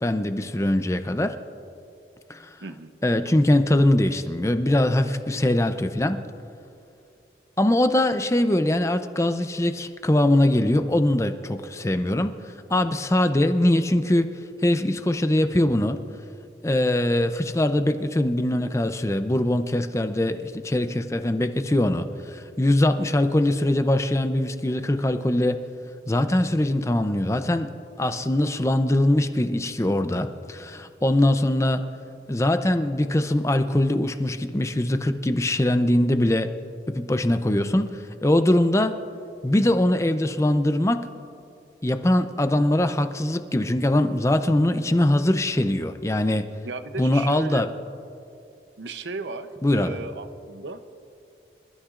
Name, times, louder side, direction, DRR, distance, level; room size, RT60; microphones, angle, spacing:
voice 1, 0.0-1.4 2.3-2.5 3.0-6.2 7.6-14.3 14.6-16.0 16.6-25.6 26.1-27.7 28.0-31.9 32.3-36.5 36.9-39.0 39.4-41.1 41.8-46.5 47.0-47.7 49.6-50.0, left 1 dB, 15° left, 9 dB, 0.5 m, -22 dB
voice 2, 2.6-2.9 46.6-47.7 48.8-50.8, right 3 dB, 90° right, 9 dB, 0.8 m, -35 dB
27.0 x 13.0 x 2.5 m, 2.5 s
head